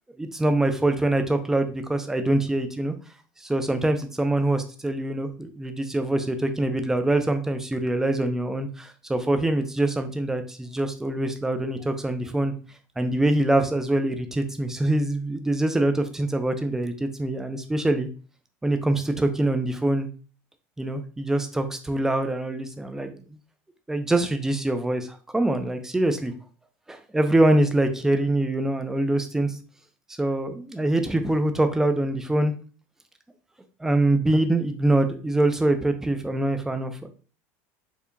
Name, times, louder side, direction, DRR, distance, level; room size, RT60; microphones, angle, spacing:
voice 1, 0.2-3.0 3.4-12.5 13.0-18.1 18.6-20.1 20.8-23.2 23.9-26.3 26.9-29.6 30.2-32.5 33.8-37.1, right 1 dB, 5° right, 8 dB, 0.4 m, -24 dB
4.6 x 2.7 x 2.5 m, 0.38 s
supercardioid pair, 135°, 7 cm